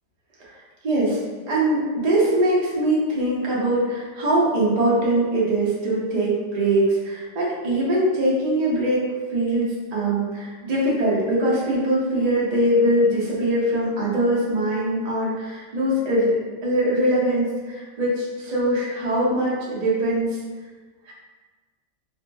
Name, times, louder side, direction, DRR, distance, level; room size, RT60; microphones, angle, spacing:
voice 1, 0.8-1.2 1.5-9.0 9.3-20.4 21.1-21.2, right 1 dB, 60° right, -6 dB, 0.4 m, -22 dB
3.6 x 2.2 x 2.6 m, 1.4 s
omnidirectional pair, 1.8 m